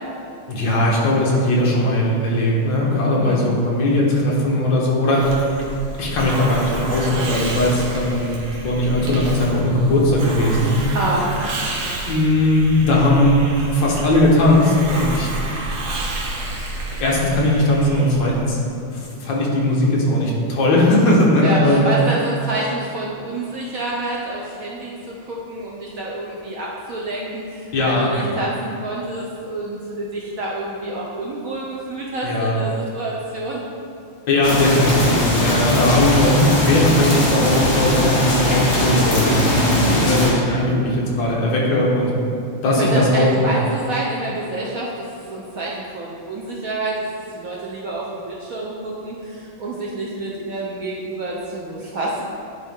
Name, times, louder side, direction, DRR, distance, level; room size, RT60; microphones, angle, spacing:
voice 1, 0.5-5.2 6.0-8.3 8.6-10.7 12.1-13.3 13.7-15.3 15.6-15.7 17.0-18.6 18.9-21.9 27.7-28.5 32.2-32.6 34.3-42.1 42.6-43.5, left 1 dB, 65° left, -4 dB, 1.9 m, -18 dB
voice 2, 3.2-3.5 10.9-11.3 21.4-33.6 39.8-40.1 42.7-47.1 47.3-52.2, right 2 dB, 75° right, -4 dB, 0.8 m, -28 dB
Hiss, 5.1-18.6, right 2 dB, 60° right, 1.2 m, -30 dB
sound 1, 34.4-40.3, left 1 dB, 45° left, 1.3 m, -19 dB
10.5 x 3.8 x 3.6 m, 2.6 s
omnidirectional pair, 2.3 m